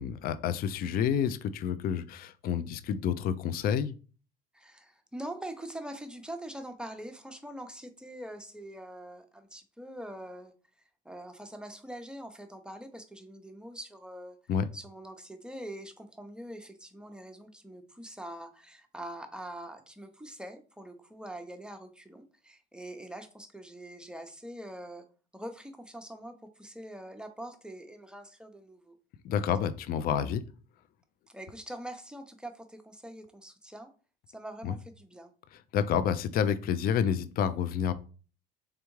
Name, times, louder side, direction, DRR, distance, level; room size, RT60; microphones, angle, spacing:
voice 1, 0.0-3.9 14.5-14.7 29.2-30.4 34.6-34.7 35.7-37.9, left 8 dB, 50° left, 13 dB, 0.4 m, -29 dB
voice 2, 4.5-10.5 11.0-14.4 14.7-25.0 25.3-29.0 31.3-33.9 34.3-35.3, right 1 dB, 5° right, 6 dB, 0.6 m, -44 dB
3.5 x 3.4 x 3.1 m, 0.37 s
supercardioid pair, 90°, 20 cm